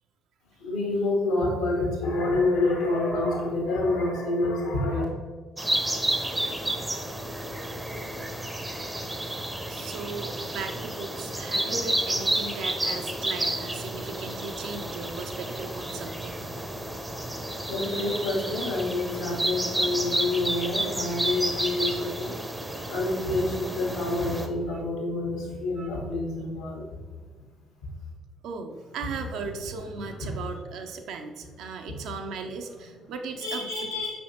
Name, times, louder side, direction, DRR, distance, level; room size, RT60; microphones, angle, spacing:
voice 1, 0.6-5.0 17.7-22.3 22.9-27.0 30.0-30.3 33.4-34.1, left 2 dB, 70° left, -2 dB, 1.1 m, -27 dB
sound 1, 5.6-24.5, right 1 dB, 10° right, 0.6 m, -31 dB
voice 2, 9.7-16.5 22.0-22.1 24.7-24.8 25.8-25.9 28.4-33.7, right 4 dB, 60° right, 5 dB, 0.4 m, -37 dB
5.3 x 3.2 x 2.9 m, 1.5 s
figure-of-eight pair, 45°, 0 cm